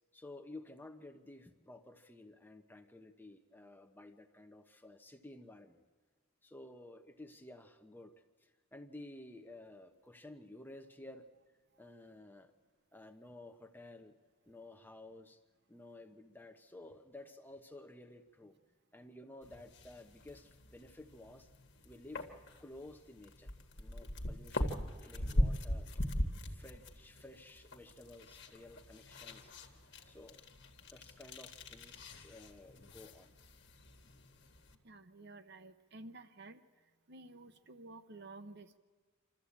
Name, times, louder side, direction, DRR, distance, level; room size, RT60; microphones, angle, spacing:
voice 1, 0.1-5.8 6.4-8.1 8.4-11.3 11.8-12.5 12.9-14.1 14.5-15.4 15.7-18.6 18.9-21.5 21.8-22.2 22.6-23.5 23.8-26.1 26.4-29.5 30.0-30.4 30.9-33.3, left 2 dB, 10° left, 6 dB, 0.9 m, -53 dB
sound 1, 19.4-34.7, left 1 dB, 50° left, 1.7 m, -41 dB
voice 2, 34.8-36.6 37.1-38.8, right 2 dB, 50° right, 11 dB, 0.8 m, -52 dB
26.5 x 13.0 x 8.6 m, 1.5 s
head